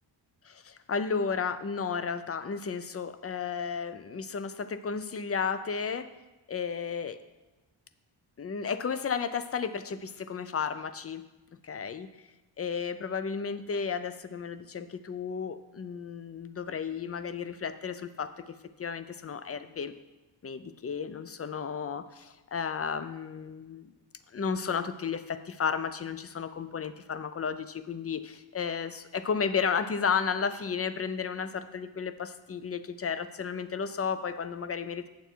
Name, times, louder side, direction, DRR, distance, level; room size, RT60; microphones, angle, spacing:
voice 1, 0.4-6.1 6.5-7.2 8.4-11.3 11.6-12.1 12.6-19.9 20.4-23.9 24.3-35.1, left 6 dB, 30° left, 12 dB, 0.5 m, -33 dB
9.1 x 6.9 x 4.5 m, 1.1 s
wide cardioid pair, 100°, 49 cm